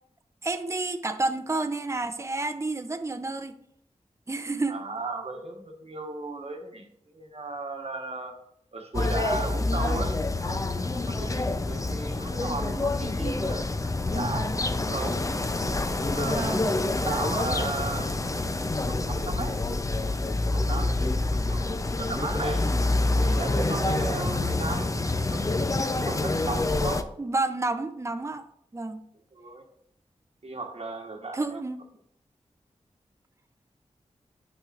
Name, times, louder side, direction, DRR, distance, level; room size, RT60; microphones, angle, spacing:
voice 1, 0.4-3.5 4.3-4.7 16.3-16.7 27.2-28.4 28.7-29.0 31.3-31.8, right 2 dB, 25° right, 9 dB, 0.6 m, -30 dB
voice 2, 4.7-8.3 8.7-15.2 15.8-18.3 18.9-19.6 20.4-22.7 23.0-27.1 29.3-29.7 30.4-31.6, right 3 dB, 55° right, 3 dB, 1.2 m, -36 dB
sound 1, 8.9-27.0, left 2 dB, 25° left, 0.5 m, -27 dB
9.1 x 5.8 x 2.5 m, 0.70 s
wide cardioid pair, 60°, 12 cm